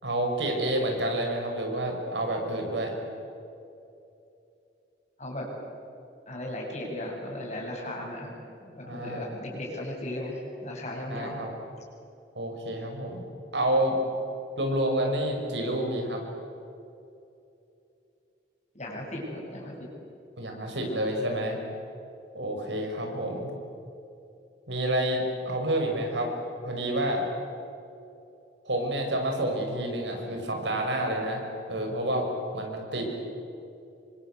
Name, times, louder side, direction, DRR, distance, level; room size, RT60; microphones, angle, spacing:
voice 1, 0.0-2.9 8.8-9.3 11.1-11.5 12.3-13.2 13.5-13.9 14.6-16.2 20.4-21.6 22.3-23.5 24.7-26.3 26.6-27.3 28.6-31.4 31.7-32.3 32.5-33.2, right 1 dB, 80° right, 2 dB, 6.0 m, -29 dB
voice 2, 5.2-5.6 6.3-8.3 8.6-11.4 18.7-19.9, left 1 dB, 40° left, -1 dB, 7.5 m, -36 dB
27.5 x 24.5 x 8.2 m, 2.7 s
head